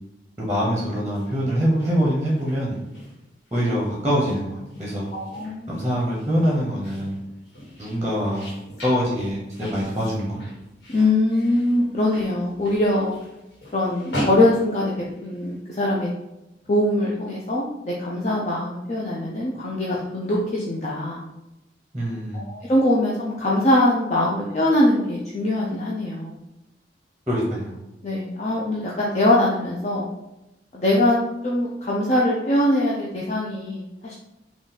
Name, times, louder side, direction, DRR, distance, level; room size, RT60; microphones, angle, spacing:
voice 1, 0.4-2.8 3.5-5.1 5.7-7.2 7.8-8.5 8.8-10.4 21.9-22.5 27.3-27.7, equal, 15° right, -4 dB, 0.8 m, -24 dB
sound 1, 1.1-15.5, equal, 75° left, 1.4 m, -38 dB
voice 2, 5.1-5.8 10.9-13.1 13.7-14.9 15.2-16.1 16.7-21.2 22.3-26.4 28.0-30.1 30.7-31.2 31.4-34.1, left 1 dB, 40° left, -4 dB, 0.5 m, -22 dB
3.8 x 2.4 x 4.0 m, 0.93 s
head